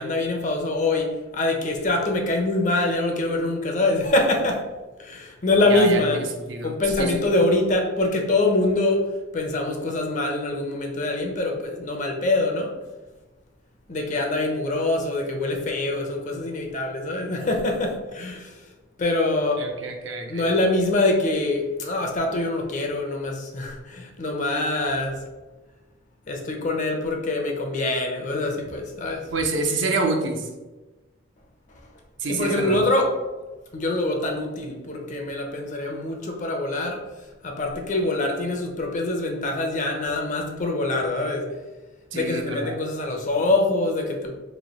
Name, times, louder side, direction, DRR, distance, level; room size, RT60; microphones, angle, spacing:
voice 1, 0.0-4.6 5.0-6.2 6.6-9.1 9.3-12.7 13.9-18.5 19.0-19.7 20.3-25.2 26.3-29.2 32.3-33.1 33.7-37.0 37.4-41.5 42.1-44.4, left 2 dB, 40° left, 2 dB, 0.6 m, -24 dB
voice 2, 5.7-6.7 7.0-7.2 19.6-20.4 29.3-30.5 32.2-32.8 42.1-42.8, right 3 dB, 75° right, 2 dB, 0.7 m, -27 dB
3.1 x 2.7 x 4.0 m, 1.2 s
head